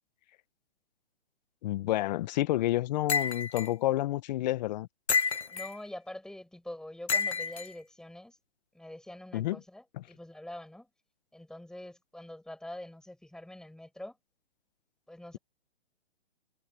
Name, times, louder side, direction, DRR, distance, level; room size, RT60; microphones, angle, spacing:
voice 1, 1.6-4.9 9.3-9.6, left 15 dB, 40° left, 1.5 m, -29 dB
sound 1, 3.1-3.7 5.1-5.8 7.1-7.7, left 5 dB, 80° left, 2.2 m, -29 dB
voice 2, 5.5-8.4 8.7-10.9 11.3-14.2 15.1-15.4, left 1 dB, ahead, 6.3 m, -45 dB
hypercardioid pair, 140°, 33 cm